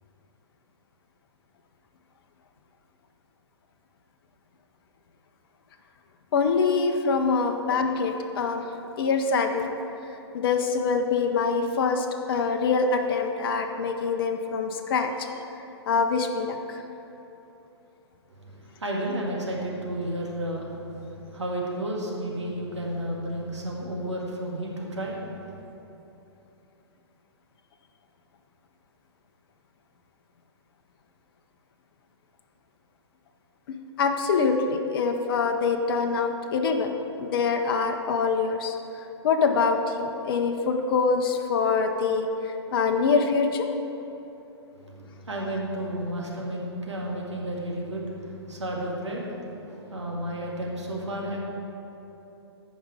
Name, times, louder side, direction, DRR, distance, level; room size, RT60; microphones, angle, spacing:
voice 1, 6.3-8.6 9.0-9.7 10.3-15.3 15.9-16.8 34.0-38.7 39.2-43.7, left 5 dB, 55° left, 4 dB, 0.8 m, -25 dB
voice 2, 18.3-25.6 44.7-49.4 49.7-51.4, right 1 dB, 85° right, -3 dB, 2.1 m, -32 dB
14.5 x 5.3 x 4.9 m, 3.0 s
figure-of-eight pair, 120°, 15 cm